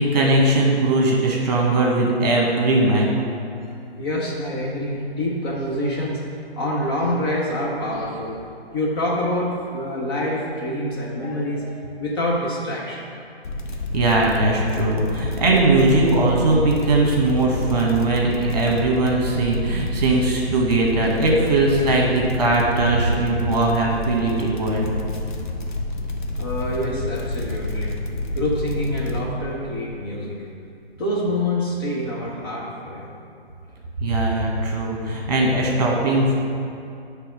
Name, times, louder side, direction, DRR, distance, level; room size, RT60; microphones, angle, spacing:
voice 1, 0.0-3.2 13.9-24.9 34.0-36.4, right 2 dB, 40° right, -1 dB, 1.4 m, -20 dB
voice 2, 4.0-6.2 6.6-8.4 8.7-13.0 14.8-14.9 26.4-27.9 28.3-30.4 30.9-33.2, left 1 dB, 25° left, -5 dB, 0.7 m, -26 dB
sound 1, 13.4-29.2, left 2 dB, 50° left, 0.8 m, -29 dB
9.7 x 3.5 x 4.9 m, 2.6 s
figure-of-eight pair, 135°, 31 cm